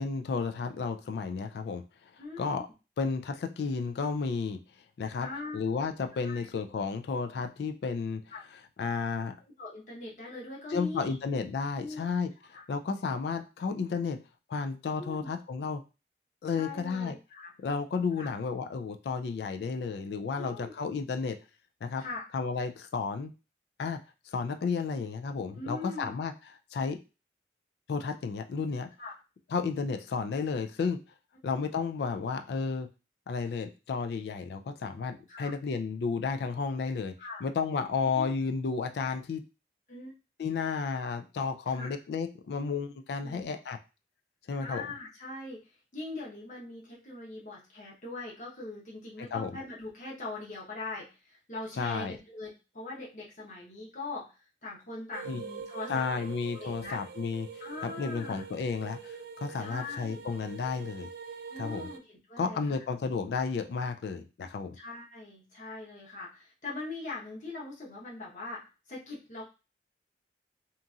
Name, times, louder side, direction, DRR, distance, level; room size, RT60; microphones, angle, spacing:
voice 1, 0.0-2.1 2.4-2.7 3.0-4.6 5.0-5.3 5.5-8.2 8.8-9.3 10.7-14.2 14.5-15.8 16.4-17.2 17.6-21.4 21.8-22.0 22.3-23.3 23.8-24.0 24.3-26.3 26.7-27.0 27.9-28.9 29.5-31.0 31.4-32.9 33.3-37.1 37.4-39.4 40.4-43.8 44.5-44.9 49.2-49.5 51.8-52.2 55.3-55.4 55.9-57.5 57.8-61.1 61.6-61.9 62.4-64.8, left 5 dB, 70° left, 7 dB, 0.3 m, -32 dB
voice 2, 2.2-2.6 5.2-5.6 6.2-6.5 8.3-8.4 9.6-11.2 11.7-12.0 12.5-12.6 15.0-15.3 16.5-17.5 18.2-18.3 20.4-20.7 22.0-22.2 25.5-26.1 29.0-29.1 35.3-35.5 37.2-37.4 38.1-38.3 39.9-40.1 41.7-42.0 43.2-43.5 44.6-54.3 54.6-56.3 56.5-57.0 57.6-58.4 59.6-60.2 61.5-62.8 64.7-69.4, left 2 dB, 45° left, -4 dB, 1.0 m, -41 dB
sound 1, 55.1-62.0, right 5 dB, 60° right, 0.3 m, -44 dB
2.9 x 2.6 x 2.4 m, 0.30 s
head